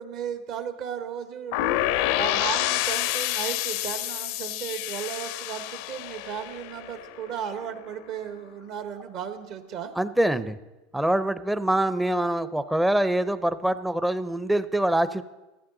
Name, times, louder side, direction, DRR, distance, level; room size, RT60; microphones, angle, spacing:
voice 1, 0.0-1.6 2.1-9.9, right 8 dB, 55° right, 8 dB, 1.3 m, -35 dB
sound 1, 1.5-7.4, left 14 dB, 70° left, 0.6 m, -28 dB
voice 2, 10.0-10.6 10.9-15.2, right 1 dB, 5° right, 13 dB, 0.6 m, -24 dB
14.5 x 14.5 x 3.9 m, 1.1 s
supercardioid pair, 130°, 0 cm